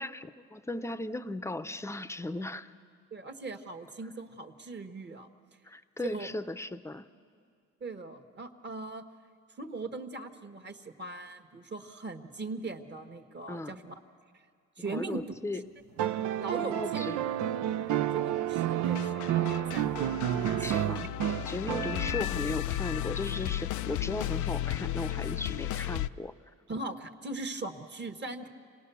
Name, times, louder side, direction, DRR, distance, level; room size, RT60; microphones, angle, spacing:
voice 1, 0.0-2.7 5.6-7.1 13.5-13.8 14.8-15.6 16.6-17.2 20.6-26.3, left 2 dB, 10° left, 13 dB, 0.7 m, -37 dB
voice 2, 3.1-5.3 6.0-6.3 7.8-9.0 9.6-14.0 14.3-14.4 14.8-15.2 15.5-15.6 16.4-17.0 17.8-21.0 21.9-22.0 26.7-28.5, right 3 dB, 35° right, 7 dB, 1.4 m, -40 dB
sound 1, 16.0-22.4 23.9-24.0, right 11 dB, 80° right, 0.6 m, -30 dB
sound 2, 18.8-26.1, left 13 dB, 75° left, 0.5 m, -34 dB
27.0 x 18.5 x 7.0 m, 2.3 s
cardioid pair, 90°, 30 cm